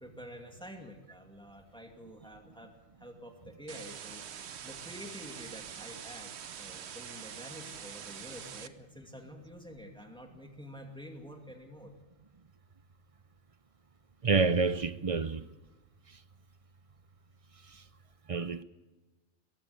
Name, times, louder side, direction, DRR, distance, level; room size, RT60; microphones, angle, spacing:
voice 1, 0.0-4.2 4.6-11.9, equal, 5° left, 2.5 m, -48 dB
sound 1, 3.7-8.7, right 8 dB, 70° right, 1.1 m, -45 dB
voice 2, 14.2-15.5 18.3-18.6, right 4 dB, 35° right, 0.7 m, -28 dB
22.0 x 15.5 x 8.5 m
omnidirectional pair, 1.2 m